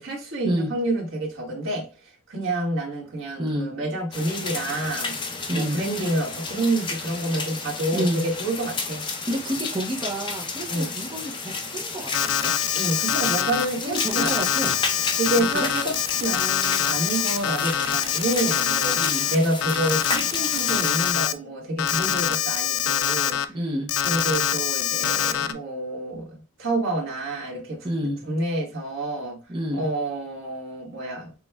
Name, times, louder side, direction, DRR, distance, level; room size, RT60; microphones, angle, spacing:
voice 1, 0.0-1.8 2.3-5.1 5.5-9.0 10.7-10.9 12.7-14.4 15.1-23.4 24.0-27.9 28.3-29.4 29.7-31.3, right 1 dB, 70° right, 1.4 m, -28 dB
voice 2, 3.4-3.7 5.5-5.8 7.9-8.2 9.3-12.5 13.8-14.7 15.4-15.7 18.9-19.3 23.5-23.9 27.8-28.2 29.5-29.9, equal, 25° right, 0.6 m, -29 dB
sound 1, 4.1-21.1, left 4 dB, 25° left, 0.6 m, -32 dB
Alarm, 12.1-13.7 14.0-19.4 19.6-21.3 21.8-23.5 23.9-25.5, left 10 dB, 80° left, 0.3 m, -24 dB
6.1 x 2.3 x 2.2 m
head